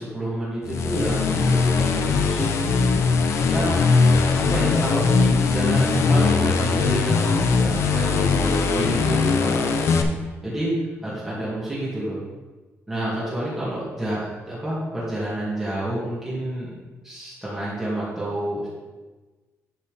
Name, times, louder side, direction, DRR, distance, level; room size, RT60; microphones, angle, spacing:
voice 1, 0.0-2.9 3.4-3.8 4.1-10.0 10.4-10.8 11.0-12.2 12.9-16.7 17.0-18.7, right 1 dB, 10° right, -9 dB, 2.2 m, -29 dB
sound 1, 0.7-10.0, left 4 dB, 60° left, 0.7 m, -20 dB
11.0 x 4.3 x 5.1 m, 1.2 s
wide cardioid pair, 180°, 5 cm